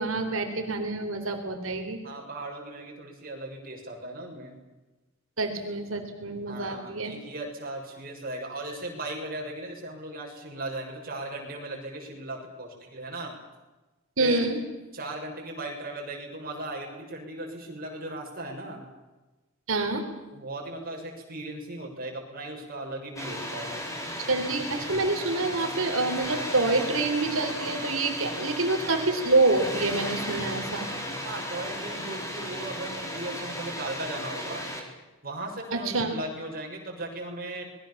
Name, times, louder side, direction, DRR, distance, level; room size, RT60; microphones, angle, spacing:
voice 1, 0.0-2.0 5.4-7.1 14.2-14.6 19.7-20.0 24.3-30.9 35.8-36.1, right 2 dB, 75° right, 5 dB, 3.6 m, -27 dB
voice 2, 2.0-4.6 6.5-13.3 14.2-14.5 14.9-18.8 20.3-23.8 31.2-34.6 35.2-37.7, right 1 dB, 45° right, 1 dB, 6.7 m, -37 dB
Water, 23.2-34.8, equal, 15° left, 4.5 m, -35 dB
26.5 x 21.5 x 7.3 m, 1.1 s
head